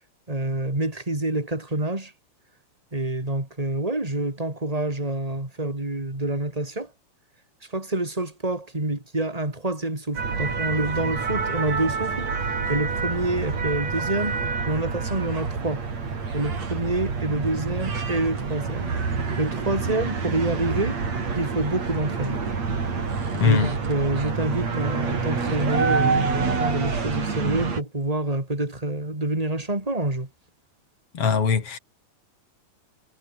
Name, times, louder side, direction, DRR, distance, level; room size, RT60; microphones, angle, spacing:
voice 1, 0.3-2.1 2.9-6.9 7.7-14.4 14.7-15.8 16.3-21.0 21.3-22.4 23.4-30.3, right 2 dB, 10° right, 4.5 m, -27 dB
sound 1, 10.2-27.8, right 5 dB, 60° right, 5.6 m, -27 dB
voice 2, 23.3-23.7 31.1-31.8, left 6 dB, 50° left, 3.6 m, -21 dB
omnidirectional pair, 3.4 m